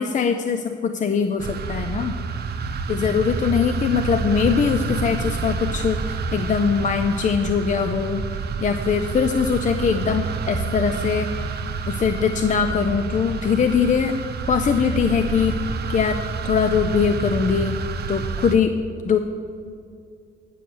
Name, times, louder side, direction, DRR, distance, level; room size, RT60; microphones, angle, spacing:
voice 1, 0.0-2.2 2.9-8.2 8.6-11.3 11.9-14.2 14.5-15.6 15.9-16.2 16.4-17.8 18.1-18.7 19.0-19.2, left 6 dB, 40° left, 7 dB, 0.5 m, -21 dB
sound 1, 1.4-18.6, right 5 dB, 55° right, 0.7 m, -28 dB
9.1 x 6.1 x 6.7 m, 2.4 s
cardioid pair, 90°, 20 cm